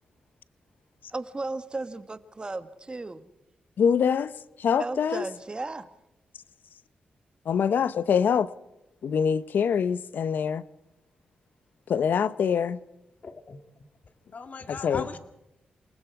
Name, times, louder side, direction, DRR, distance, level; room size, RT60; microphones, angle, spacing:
voice 1, 1.1-3.3 4.8-5.9, right 2 dB, 30° right, 1.6 m, -35 dB
voice 2, 3.8-4.3 4.6-5.2 7.5-8.5 9.0-10.6 11.9-12.8 14.7-15.1, left 7 dB, 75° left, 0.8 m, -24 dB
voice 3, 13.2-13.6 14.3-15.2, left 4 dB, 50° left, 2.1 m, -38 dB
28.5 x 20.0 x 4.8 m
cardioid pair, 75°, 3 cm